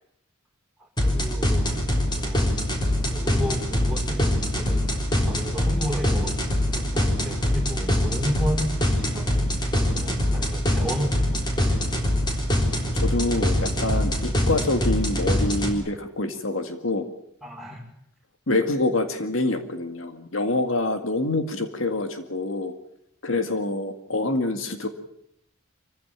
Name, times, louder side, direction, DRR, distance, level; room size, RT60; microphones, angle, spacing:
sound 1, 1.0-15.7, left 1 dB, 20° left, 3.8 m, -24 dB
voice 1, 1.0-1.8 2.1-2.5 3.0-4.8 5.2-6.4 6.7-11.5 17.4-17.8, equal, ahead, -1 dB, 5.5 m, -33 dB
voice 2, 13.0-17.1 18.5-22.7 23.2-24.9, left 2 dB, 70° left, 7 dB, 2.1 m, -26 dB
25.0 x 15.5 x 8.9 m, 0.76 s
head